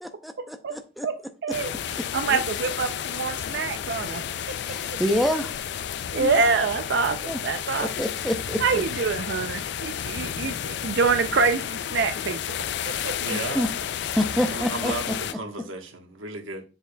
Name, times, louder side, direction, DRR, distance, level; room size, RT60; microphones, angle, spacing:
voice 1, 0.0-1.1 2.3-2.4 4.6-5.5 6.2-6.3 7.3-7.4 7.8-8.8 13.3-13.7 14.1-14.9, equal, ahead, 0.5 m, -27 dB
voice 2, 1.4-4.2 4.5-4.6 4.9-5.3 6.1-8.0 8.6-12.6 12.9-13.3, right 4 dB, 55° right, 0.4 m, -26 dB
sound 1, 1.5-15.3, left 9 dB, 55° left, 0.3 m, -32 dB
voice 3, 13.2-13.7 14.5-16.6, right 2 dB, 75° right, 1.2 m, -34 dB
7.4 x 6.7 x 2.2 m
head